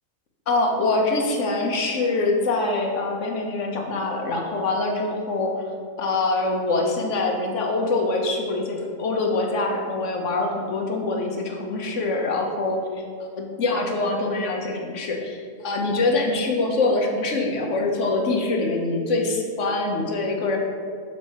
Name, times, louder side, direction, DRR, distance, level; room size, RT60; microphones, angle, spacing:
voice 1, 0.5-5.7 6.0-20.6, left 2 dB, 65° left, 2 dB, 1.2 m, -24 dB
6.0 x 4.2 x 6.2 m, 2.1 s
omnidirectional pair, 1.4 m